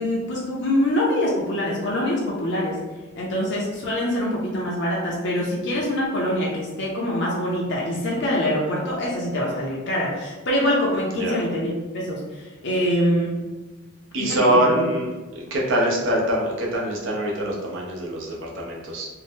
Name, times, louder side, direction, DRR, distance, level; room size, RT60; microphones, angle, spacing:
voice 1, 0.0-2.8 3.2-13.3 14.2-14.9, left 1 dB, 55° left, -4 dB, 0.5 m, -24 dB
voice 2, 14.1-19.1, right 1 dB, 65° right, -3 dB, 0.7 m, -24 dB
2.6 x 2.1 x 3.5 m, 1.2 s
head